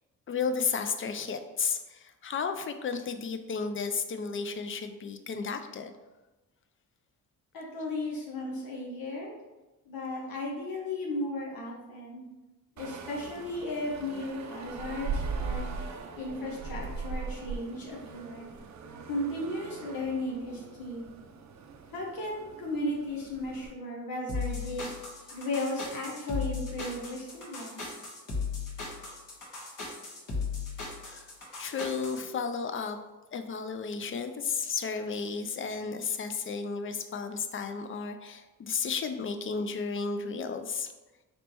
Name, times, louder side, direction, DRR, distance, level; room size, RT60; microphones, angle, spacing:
voice 1, 0.3-6.0 31.1-33.0 33.3-40.9, left 5 dB, 35° left, 8 dB, 0.4 m, -33 dB
voice 2, 7.5-9.3 9.9-12.2 12.8-15.7 16.1-18.5 19.1-21.1 21.9-24.9 25.3-27.8, left 1 dB, 80° left, -2 dB, 0.9 m, -35 dB
sound 1, 12.8-23.7, right 4 dB, 55° right, 0.5 m, -40 dB
sound 2, 24.3-32.2, left 5 dB, 60° left, 1.3 m, -36 dB
4.1 x 3.4 x 3.0 m, 1.1 s
cardioid pair, 90°, 35 cm